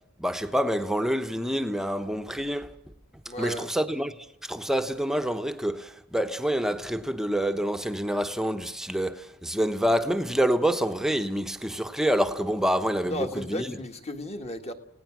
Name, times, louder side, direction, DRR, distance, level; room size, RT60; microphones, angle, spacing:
voice 1, 0.2-2.7 3.4-4.1 4.4-13.7, equal, ahead, 1.0 m, -27 dB
voice 2, 3.2-3.7 13.0-14.7, equal, 30° left, 1.7 m, -34 dB
29.5 x 17.5 x 6.1 m
head